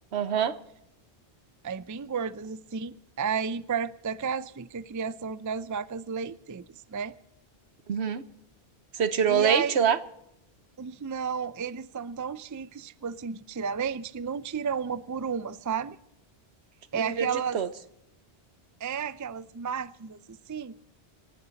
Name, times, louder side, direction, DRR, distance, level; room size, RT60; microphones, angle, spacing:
voice 1, 0.1-0.6 7.9-8.2 9.0-10.0 17.0-17.7, right 7 dB, 80° right, 13 dB, 1.2 m, -25 dB
voice 2, 1.6-6.6 6.9-7.1 9.3-9.9 10.8-16.0 16.9-17.6 18.8-20.7, right 6 dB, 30° right, 15 dB, 0.3 m, -32 dB
27.5 x 11.0 x 4.1 m, 0.84 s
omnidirectional pair, 1.1 m